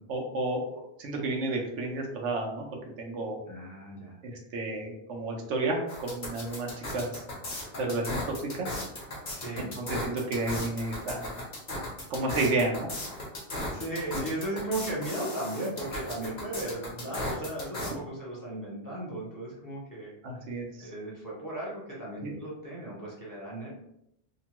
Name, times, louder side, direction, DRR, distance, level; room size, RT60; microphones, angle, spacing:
voice 1, 0.1-2.7 3.0-3.4 4.2-7.2 7.8-8.8 9.6-11.3 12.1-12.9 14.1-14.2 20.2-20.9 22.2-22.4, right 2 dB, 90° right, 0 dB, 1.0 m, -31 dB
voice 2, 3.5-4.2 9.4-9.8 13.7-20.1 20.8-23.7, right 1 dB, 20° left, -6 dB, 0.7 m, -36 dB
sound 1, 5.9-17.9, left 1 dB, 45° left, 1.0 m, -36 dB
2.9 x 2.2 x 2.9 m, 0.79 s
omnidirectional pair, 1.2 m